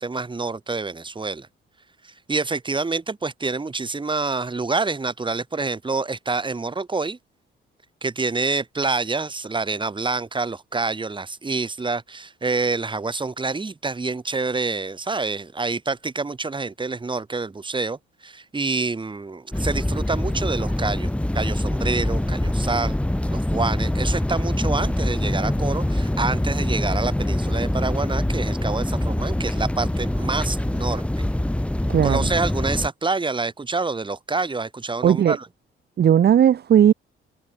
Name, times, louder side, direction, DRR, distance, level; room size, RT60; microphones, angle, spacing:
voice 1, 0.0-1.5 2.0-7.2 8.0-23.0 23.3-31.2 32.0-35.5, right 3 dB, 25° right, 4.1 m, -27 dB
sound 1, 19.5-32.9, left 1 dB, 5° left, 1.6 m, -24 dB
voice 2, 31.9-32.3 35.0-35.4 36.0-36.9, right 9 dB, 55° right, 1.2 m, -16 dB
cardioid pair, 90°, 20 cm